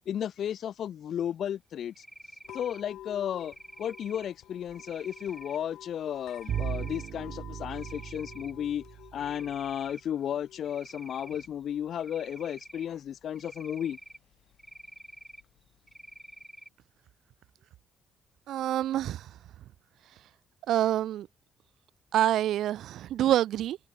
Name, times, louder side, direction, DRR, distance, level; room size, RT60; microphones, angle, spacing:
voice 1, 0.1-2.0 2.5-8.8 9.1-14.0, left 9 dB, 60° left, 0.5 m, -34 dB
Cricket, 1.9-2.8 3.4-4.3 4.7-5.6 6.3-7.1 7.5-8.5 8.9-10.0 10.6-11.5 12.0-12.9 13.4-14.2 14.6-15.4 15.9-16.7, right 1 dB, 5° right, 5.7 m, -49 dB
sound 1, 2.4-16.4, left 13 dB, 80° left, 4.2 m, -52 dB
Bowed string instrument, 6.5-9.5, right 9 dB, 60° right, 1.6 m, -37 dB
voice 2, 18.5-19.3 20.7-21.3 22.1-23.8, right 12 dB, 75° right, 0.6 m, -26 dB
cardioid pair, 130°, 0 cm